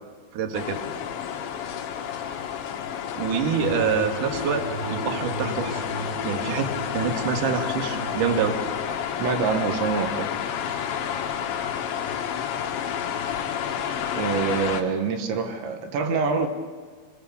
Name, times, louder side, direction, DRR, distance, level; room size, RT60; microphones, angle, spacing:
voice 1, 0.3-0.8 3.2-5.8 6.2-6.7 6.9-8.6, right 6 dB, 55° right, 3 dB, 2.9 m, -26 dB
sound 1, 0.5-14.8, left 8 dB, 85° left, 3.7 m, -30 dB
sound 2, 3.6-8.6, right 1 dB, 15° right, 0.8 m, -35 dB
voice 2, 9.2-10.3 14.1-16.5, right 5 dB, 80° right, 6 dB, 3.6 m, -25 dB
27.0 x 21.5 x 6.9 m, 1.5 s
omnidirectional pair, 5.1 m